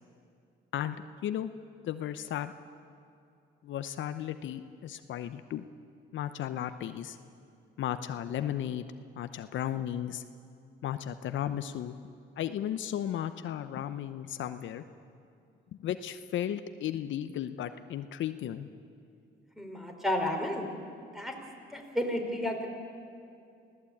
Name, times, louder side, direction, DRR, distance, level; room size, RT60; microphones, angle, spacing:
voice 1, 1.8-2.5 3.6-5.7 6.1-7.2 7.8-8.8 9.2-10.2 10.8-11.9 12.4-14.8 15.8-18.7, left 11 dB, 75° left, 10 dB, 0.8 m, -34 dB
voice 2, 19.6-20.7 21.1-21.3 21.7-22.7, left 1 dB, ahead, 2 dB, 4.3 m, -32 dB
24.5 x 17.0 x 8.7 m, 2.5 s
cardioid pair, 90°, 20 cm